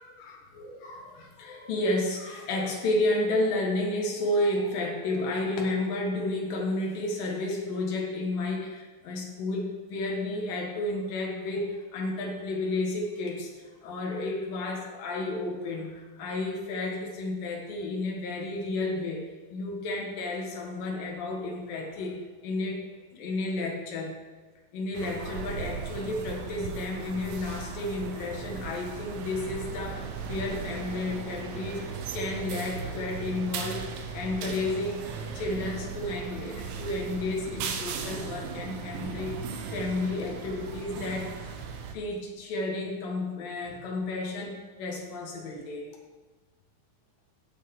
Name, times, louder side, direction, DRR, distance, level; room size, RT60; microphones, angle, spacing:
voice 1, 0.0-19.2 19.5-22.8 23.1-24.2 24.7-39.4 39.7-41.3 41.9-45.9, left 2 dB, 75° left, 0 dB, 3.3 m, -32 dB
sound 1, 24.9-42.0, right 6 dB, 85° right, 2.7 m, -37 dB
15.0 x 6.9 x 3.8 m, 1.3 s
omnidirectional pair, 4.1 m